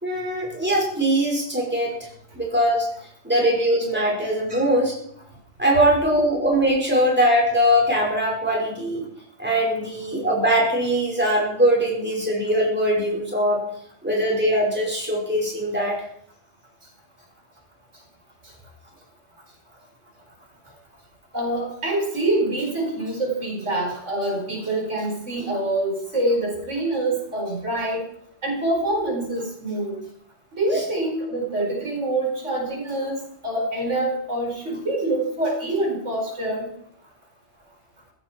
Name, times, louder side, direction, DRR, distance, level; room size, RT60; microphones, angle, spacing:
voice 1, 0.0-1.9 2.4-2.9 3.2-4.9 5.6-9.1 9.4-13.6 14.0-16.0, equal, 10° right, -3 dB, 5.1 m, -21 dB
voice 2, 21.3-28.1 28.4-29.9 30.5-36.7, right 1 dB, 80° right, 0 dB, 5.2 m, -25 dB
16.5 x 15.5 x 4.6 m, 0.67 s
omnidirectional pair, 1.2 m